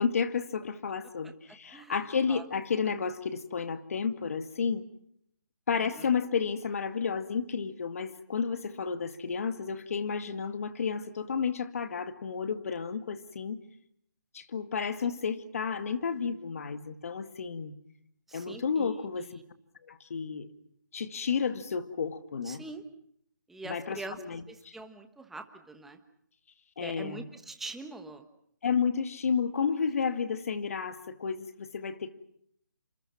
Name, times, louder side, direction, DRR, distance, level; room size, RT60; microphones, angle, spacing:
voice 1, 0.0-4.8 5.7-13.6 14.3-17.8 18.3-19.4 19.9-20.5 20.9-22.6 23.6-24.7 26.8-27.2 28.6-32.1, left 6 dB, 50° left, 10 dB, 2.1 m, -31 dB
voice 2, 18.3-19.4 22.4-22.8 23.5-24.2 24.5-26.0 26.8-28.2, right 3 dB, 5° right, 6 dB, 1.3 m, -44 dB
28.0 x 27.5 x 5.9 m, 0.69 s
hypercardioid pair, 165°, 10 cm